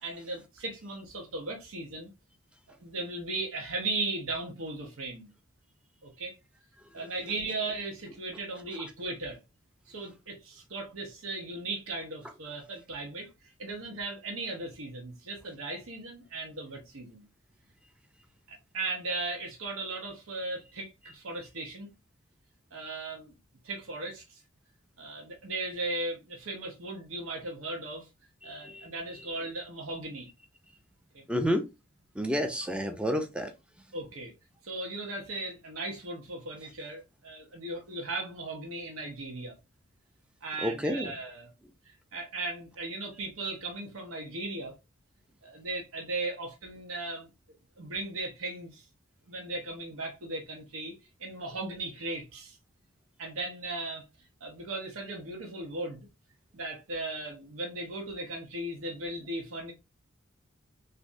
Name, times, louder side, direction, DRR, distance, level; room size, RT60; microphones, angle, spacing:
voice 1, 0.0-2.1 2.8-5.3 6.0-6.3 6.9-9.4 9.9-13.3 13.6-17.3 18.5-21.9 22.7-23.3 23.6-24.4 25.0-28.1 28.4-30.3 31.1-31.2 33.9-34.3 34.6-39.6 40.4-41.5 42.1-44.7 45.4-47.3 47.8-48.8 49.3-50.9 51.2-52.6 53.2-54.0 54.4-56.1 56.5-59.7, right 2 dB, 85° right, 0.9 m, -37 dB
voice 2, 28.4-28.9 31.3-31.7 32.2-33.5 40.6-41.1, equal, 5° right, 0.4 m, -30 dB
3.3 x 2.6 x 2.5 m
head